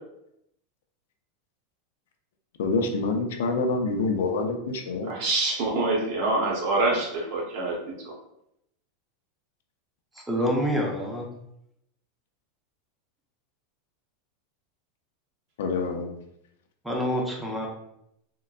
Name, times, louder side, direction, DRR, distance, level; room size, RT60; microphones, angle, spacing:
voice 1, 2.6-5.1 15.6-16.1, left 3 dB, 85° left, 5 dB, 0.5 m, -26 dB
voice 2, 5.1-7.8 8.1-8.2, right 2 dB, 55° right, -1 dB, 0.9 m, -25 dB
voice 3, 10.3-11.3 16.8-17.7, equal, 5° right, -1 dB, 0.6 m, -26 dB
3.7 x 2.2 x 2.3 m, 0.77 s
supercardioid pair, 150°, 0 cm